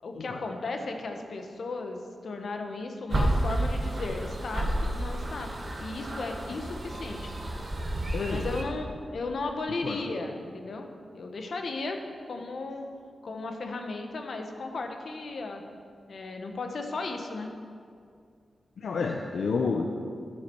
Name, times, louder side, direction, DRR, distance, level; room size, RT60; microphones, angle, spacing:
voice 1, 0.0-7.3 8.3-10.9 11.1-12.0 12.3-12.9 13.2-15.6 16.1-17.5, left 3 dB, 60° left, 4 dB, 1.0 m, -35 dB
sound 1, 3.1-8.6, right 1 dB, 30° right, 1.4 m, -31 dB
voice 2, 8.1-8.5 9.8-10.0 18.8-19.9, left 4 dB, 80° left, 2 dB, 0.6 m, -29 dB
13.5 x 7.6 x 4.5 m, 2.2 s
wide cardioid pair, 160°, 0 cm